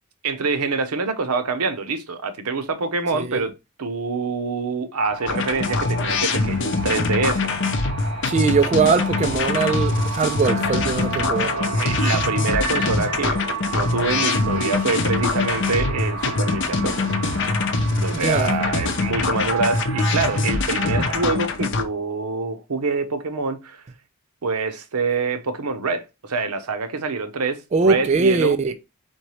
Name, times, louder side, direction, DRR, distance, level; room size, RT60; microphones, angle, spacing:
voice 1, 0.2-3.5 3.8-7.5 11.5-13.4 13.7-17.0 17.9-23.8 24.4-28.7, right 4 dB, 90° right, 0.8 m, -26 dB
sound 1, 5.0-21.3, right 4 dB, 65° right, 1.5 m, -32 dB
sound 2, 5.3-21.8, left 3 dB, 55° left, 0.7 m, -23 dB
voice 2, 8.2-11.5 18.1-18.6 27.7-28.7, right 4 dB, 30° right, 0.3 m, -21 dB
4.4 x 3.9 x 3.1 m
head